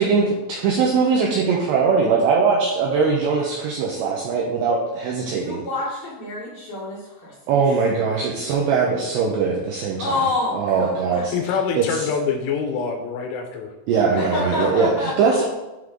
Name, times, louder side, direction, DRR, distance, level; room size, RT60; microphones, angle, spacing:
voice 1, 0.6-5.6 7.5-10.1 10.5-11.3 11.8-12.1 13.9-15.5, right 5 dB, 80° right, -2 dB, 2.5 m, -21 dB
voice 2, 5.2-7.6 10.0-11.2 14.2-15.5, left 3 dB, 70° left, -5 dB, 2.4 m, -28 dB
voice 3, 11.3-13.7, left 6 dB, 85° left, 4 dB, 3.1 m, -25 dB
11.0 x 3.8 x 3.8 m, 1.0 s
omnidirectional pair, 5.8 m